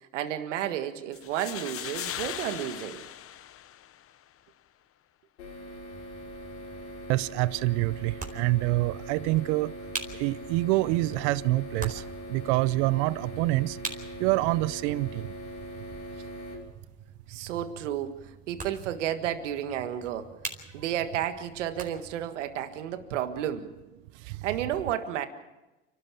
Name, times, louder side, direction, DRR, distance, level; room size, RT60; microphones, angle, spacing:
voice 1, 0.1-3.0 17.3-18.2 18.5-20.3 20.7-23.7 24.4-25.3, right 11 dB, 90° right, 1.8 m, -32 dB
sound 1, 1.1-4.1, left 11 dB, 40° left, 1.0 m, -38 dB
sound 2, 5.4-16.6, equal, 90° left, 5.8 m, -42 dB
sound 3, 5.9-22.3, right 3 dB, 25° right, 4.4 m, -45 dB
voice 2, 7.1-9.7 10.2-12.0 12.3-13.8 14.2-15.3 24.3-24.4, right 19 dB, 75° right, 0.7 m, -26 dB
29.5 x 13.0 x 7.2 m
supercardioid pair, 90°, 35 cm